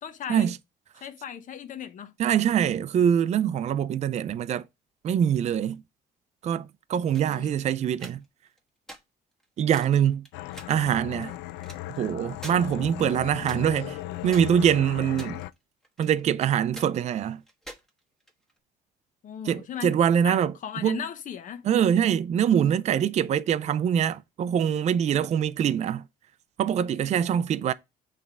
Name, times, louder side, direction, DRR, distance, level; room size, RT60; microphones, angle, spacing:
voice 1, 0.0-0.5 1.0-2.1 7.2-7.5 19.2-20.0 20.2-21.7, left 8 dB, 50° left, 1.0 m, -37 dB
voice 2, 2.2-4.6 5.0-5.8 6.4-8.2 9.6-10.3 10.7-11.4 12.0-14.0 14.2-15.4 16.0-17.4 19.5-20.5 20.8-21.0 21.6-26.0 26.6-27.7, right 9 dB, 40° right, 0.4 m, -24 dB
sound 1, 7.1-7.4 7.9-8.6 8.9-9.0 9.4-9.5 9.7-9.9 10.2-10.7 11.2-12.0 12.3-12.6 12.8-12.9 13.5-13.9 14.3-15.6 15.8-16.4 16.7-16.9 17.5-18.6, right 1 dB, 5° left, 1.2 m, -44 dB
sound 2, 10.3-15.5, left 15 dB, 85° left, 0.4 m, -37 dB
7.0 x 3.4 x 4.7 m
cardioid pair, 110°, 17 cm